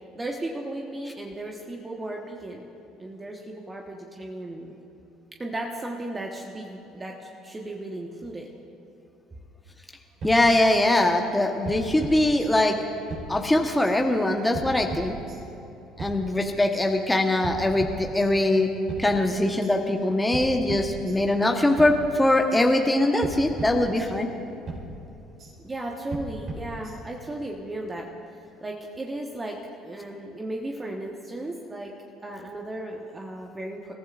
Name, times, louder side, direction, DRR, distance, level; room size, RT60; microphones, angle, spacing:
voice 1, 0.1-2.6 3.0-4.7 5.4-8.5 16.5-16.6 25.6-31.9 32.2-33.9, right 1 dB, 20° right, 0 dB, 1.3 m, -35 dB
voice 2, 10.2-12.8 13.3-15.1 16.0-18.7 19.0-24.3, left 1 dB, 10° left, 3 dB, 1.2 m, -22 dB
sound 1, 10.2-11.1 11.6-12.8 13.1-14.0 14.5-15.6 16.0-16.9 17.4-18.6 18.9-19.7 20.3-21.5 21.8-22.6 23.2-24.4 24.7-25.5 26.1-27.3, right 2 dB, 45° right, 4.4 m, -38 dB
29.0 x 15.5 x 2.5 m, 3.0 s
figure-of-eight pair, 55°, 0 cm